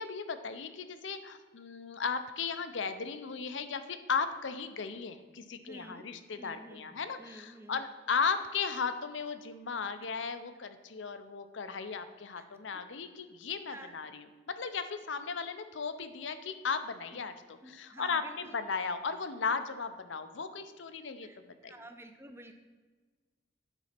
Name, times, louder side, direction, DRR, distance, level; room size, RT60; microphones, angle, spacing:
voice 1, 0.0-14.1 14.5-17.3 17.7-21.3 21.6-21.7, left 5 dB, 75° left, 10 dB, 0.6 m, -36 dB
voice 2, 5.7-6.1 6.4-7.9 12.3-12.5 13.7-14.0 17.1-17.2 17.6-18.6 21.2-22.5, right 1 dB, 15° right, 6 dB, 0.6 m, -50 dB
9.0 x 4.1 x 5.8 m, 1.4 s
head